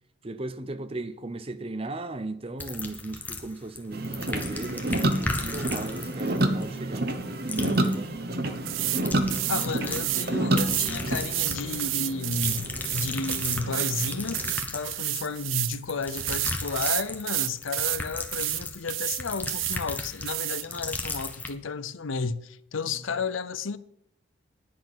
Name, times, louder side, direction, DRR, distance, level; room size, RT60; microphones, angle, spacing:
voice 1, 0.2-7.1 7.4-8.1 22.9-23.0, right 2 dB, 30° right, 0.7 m, -36 dB
sound 1, 2.6-3.8 4.0-7.2 7.5-8.0 8.7-10.2 10.6-11.9 12.3-21.5, left 2 dB, 10° left, 1.0 m, -36 dB
sound 2, 3.9-14.6, right 1 dB, 50° right, 1.0 m, -30 dB
sound 3, 8.7-9.0 9.3-10.3 10.6-15.8 16.1-18.0 18.3-18.6 18.9-19.8 20.3-20.6, right 20 dB, 75° right, 0.3 m, -30 dB
voice 2, 9.5-14.4 14.7-23.8, left 4 dB, 75° left, 0.7 m, -32 dB
10.5 x 6.1 x 8.7 m
head